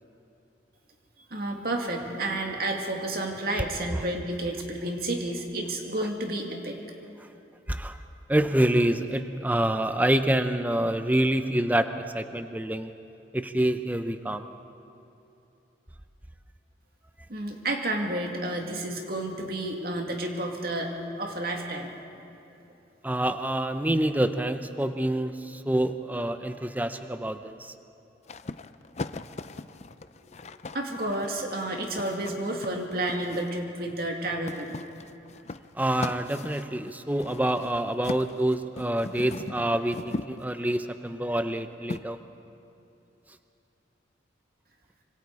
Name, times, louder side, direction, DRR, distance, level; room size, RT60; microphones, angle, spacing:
voice 1, 1.3-6.8 17.3-20.9 21.2-21.9 30.7-34.8, right 1 dB, 50° right, 2 dB, 2.4 m, -31 dB
voice 2, 7.7-8.0 8.3-12.9 13.3-14.4 23.0-27.7 35.7-42.2, right 1 dB, 10° right, 9 dB, 0.6 m, -27 dB
sound 1, 28.3-33.6 34.5-40.8 41.9-42.0, left 2 dB, 35° left, 0.5 m, -39 dB
25.5 x 25.5 x 4.8 m, 2.8 s
head